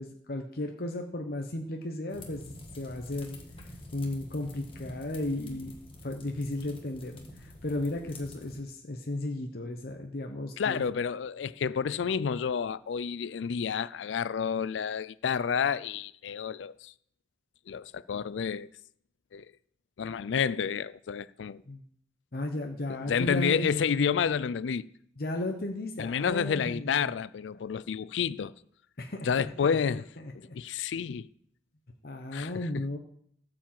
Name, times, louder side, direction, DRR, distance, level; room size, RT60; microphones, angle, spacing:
voice 1, 0.0-3.4 3.9-5.8 6.0-10.9 21.7-21.8 22.3-23.7 25.2-27.0 29.0-30.6 32.0-33.0, left 1 dB, 55° left, 0.9 m, -35 dB
sound 1, 2.1-8.6, left 1 dB, 30° left, 1.6 m, -47 dB
voice 2, 10.6-16.9 17.7-18.7 19.3-19.4 20.0-21.6 22.9-24.9 26.0-28.5 29.3-30.0 30.3-31.3 32.3-32.7, left 7 dB, 90° left, 0.4 m, -30 dB
12.5 x 4.9 x 7.6 m
head